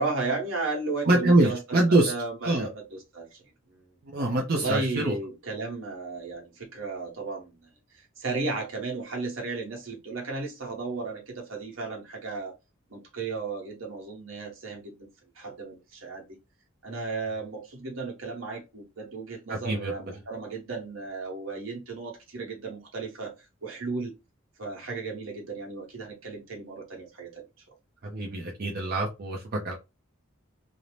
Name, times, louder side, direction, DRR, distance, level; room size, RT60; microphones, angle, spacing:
voice 1, 0.0-3.4 3.7-3.9 4.5-7.6 7.9-12.6 12.9-15.1 15.3-16.2 16.8-24.1 24.6-27.4, right 3 dB, 75° right, 1.1 m, -34 dB
voice 2, 1.1-2.1 2.4-2.7 4.0-5.1 19.5-19.9 28.0-29.7, right 2 dB, 50° right, 0.5 m, -24 dB
2.6 x 2.0 x 3.1 m
head